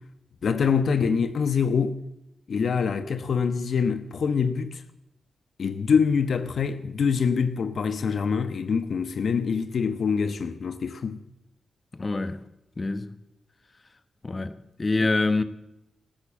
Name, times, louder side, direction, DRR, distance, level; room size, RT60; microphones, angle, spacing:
voice 1, 0.4-2.0 2.5-4.8 5.6-11.2, left 6 dB, 65° left, 1.0 m, -25 dB
voice 2, 11.9-12.4 12.8-13.1 14.2-15.4, left 3 dB, 35° left, 1.2 m, -26 dB
14.0 x 13.5 x 7.5 m
cardioid pair, 60°, 0 cm